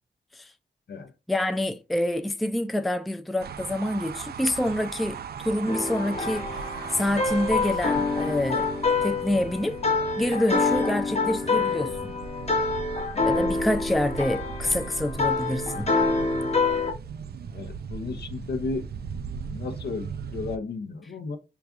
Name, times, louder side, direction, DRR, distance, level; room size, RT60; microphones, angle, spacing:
voice 1, 1.3-6.5 6.9-8.7 9.0-9.8 10.2-12.1 13.2-15.9, left 1 dB, ahead, 0.4 m, -27 dB
sound 1, 3.4-20.6, right 6 dB, 65° right, 0.4 m, -38 dB
sound 2, 5.7-16.9, left 4 dB, 35° left, 0.8 m, -27 dB
voice 2, 17.5-18.8 19.5-21.4, left 3 dB, 75° left, 0.7 m, -33 dB
4.8 x 2.3 x 2.4 m
cardioid pair, 75°, 17 cm